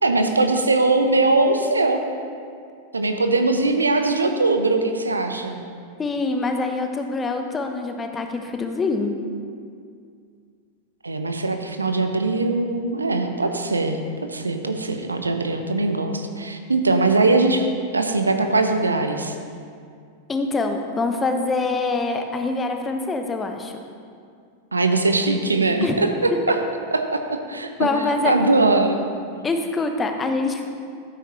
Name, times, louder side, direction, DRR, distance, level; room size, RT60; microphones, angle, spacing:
voice 1, 0.0-2.0 2.9-5.6 11.0-14.0 14.3-19.3 24.7-26.6 26.9-27.9 28.2-29.0, right 3 dB, 80° right, 6 dB, 0.8 m, -21 dB
voice 2, 6.0-9.2 20.3-23.7 25.8-26.0 27.8-28.3 29.4-30.7, left 3 dB, 15° left, 5 dB, 0.9 m, -24 dB
12.0 x 9.2 x 3.1 m, 2.2 s
figure-of-eight pair, 90°, 0 cm